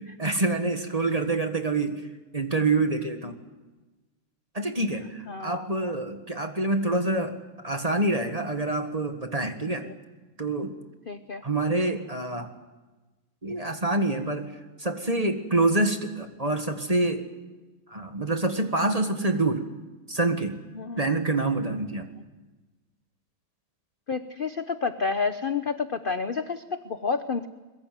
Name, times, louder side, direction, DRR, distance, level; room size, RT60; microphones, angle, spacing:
voice 1, 0.0-2.0 2.3-3.4 4.5-9.9 10.4-10.8 11.4-12.5 13.4-17.2 17.9-19.7 20.1-20.6 21.0-22.1, right 2 dB, 20° right, 6 dB, 1.6 m, -26 dB
voice 2, 5.3-5.9 9.8-9.9 11.1-11.4 20.8-21.1 24.1-27.5, left 5 dB, 45° left, 10 dB, 0.6 m, -30 dB
22.5 x 22.0 x 9.5 m, 1.2 s
omnidirectional pair, 2.2 m